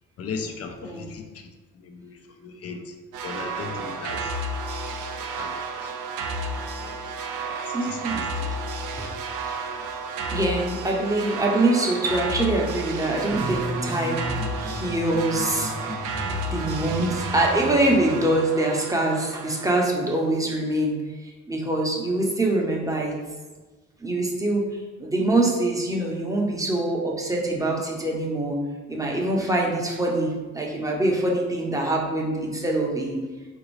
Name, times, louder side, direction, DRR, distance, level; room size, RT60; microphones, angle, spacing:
voice 1, 0.2-1.2 1.8-2.2 2.4-2.9 3.2-4.4 5.4-5.6 7.7-8.5, left 5 dB, 50° left, 5 dB, 0.5 m, -36 dB
sound 1, 3.1-20.0, right 3 dB, 85° right, 0.4 m, -32 dB
voice 2, 7.7-8.2 8.5-8.6 9.0-9.1 10.3-14.3 14.6-15.7 16.5-21.0 21.5-23.2 24.0-24.7 25.0-28.6 28.9-33.2, right 2 dB, 10° right, -1 dB, 0.6 m, -24 dB
sound 2, 13.3-18.1, equal, 90° left, 1.0 m, -34 dB
3.8 x 2.6 x 3.1 m, 1.3 s
cardioid pair, 90°, 30 cm